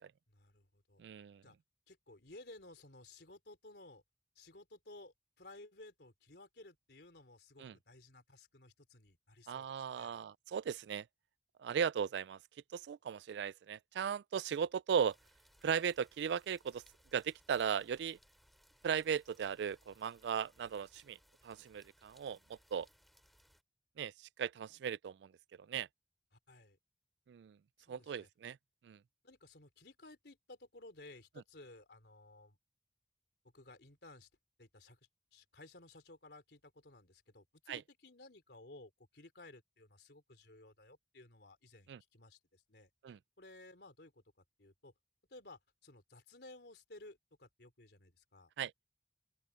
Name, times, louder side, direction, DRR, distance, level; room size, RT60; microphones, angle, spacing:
voice 1, 0.3-1.0 1.4-1.6 1.9-4.0 4.3-10.2 26.3-26.8 27.8-28.3 29.2-32.6 33.5-34.3 34.6-35.0 35.3-42.9 43.4-44.2 44.6-44.9 45.3-48.5, left 2 dB, 70° left, 3.2 m, -57 dB
voice 2, 1.0-1.4 7.6-7.7 9.5-11.1 11.6-12.4 12.7-15.2 15.6-16.8 17.1-18.2 18.8-21.2 21.4-22.9 24.0-24.1 24.4-25.3 25.7-25.9 27.3-27.6 27.9-28.6 28.8-29.0 37.7-37.8 41.9-42.0 43.0-43.2 48.6-48.7, right 7 dB, 80° right, 0.3 m, -37 dB
sound 1, 15.0-23.6, equal, ahead, 3.8 m, -68 dB
open air
head